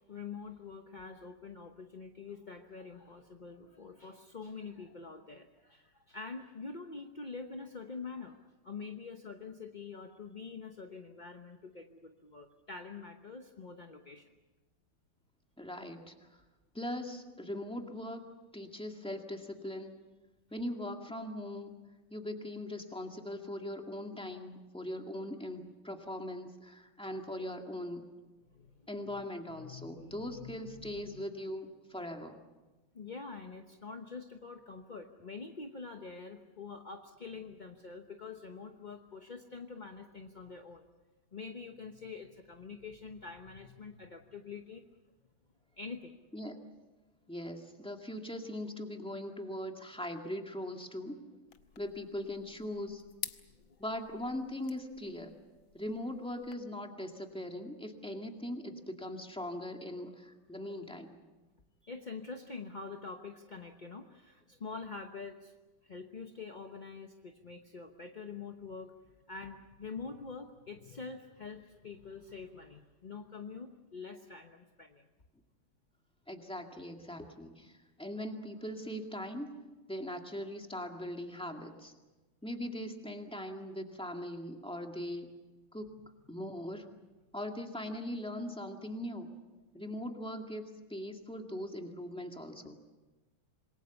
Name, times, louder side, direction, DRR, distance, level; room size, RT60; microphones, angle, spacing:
voice 1, 0.0-14.3 28.5-29.3 29.6-31.3 32.9-40.9 41.3-44.9 45.8-46.2 53.5-53.8 61.9-65.5 65.8-68.9 69.3-75.1, left 4 dB, 35° left, 4 dB, 0.7 m, -46 dB
voice 2, 15.6-16.3 16.7-19.9 20.5-21.7 22.1-28.1 28.9-32.4 46.3-46.6 47.3-51.2 51.8-53.0 53.8-55.4 55.7-61.2 76.3-79.5 79.9-81.9 82.4-85.3 85.7-85.9 86.3-86.9 87.3-89.3 89.7-92.8, left 1 dB, 5° left, 3 dB, 1.9 m, -40 dB
sound 1, 51.5-56.5, left 10 dB, 70° left, 1.7 m, -50 dB
27.0 x 21.5 x 7.1 m, 1.2 s
omnidirectional pair, 2.3 m